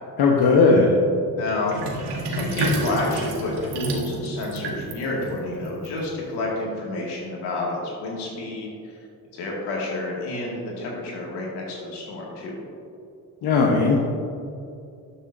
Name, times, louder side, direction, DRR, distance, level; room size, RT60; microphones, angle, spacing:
voice 1, 0.2-0.9 13.4-14.0, left 4 dB, 75° left, -1 dB, 1.0 m, -17 dB
voice 2, 1.4-9.0 9.3-12.6, left 2 dB, 90° left, -3 dB, 2.0 m, -29 dB
Sink (filling or washing), 1.7-6.4, right 2 dB, 85° right, 1.3 m, -30 dB
12.0 x 7.1 x 2.6 m, 2.5 s
supercardioid pair, 60°, 39 cm